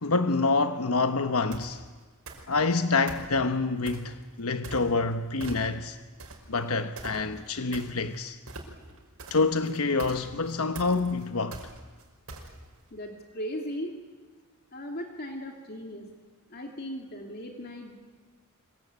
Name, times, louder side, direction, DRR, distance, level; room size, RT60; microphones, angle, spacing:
voice 1, 0.0-1.8 2.5-6.0 6.5-8.4 9.3-11.6, left 3 dB, 80° left, 1.2 m, -27 dB
sound 1, 1.5-1.8 2.3-2.7 3.1-4.1 4.6-5.1 5.4-5.9 6.2-12.8, right 2 dB, 85° right, 5.5 m, -42 dB
voice 2, 12.9-13.9 14.7-16.1 16.5-18.0, equal, 45° left, 2.7 m, -37 dB
26.0 x 23.5 x 9.5 m
head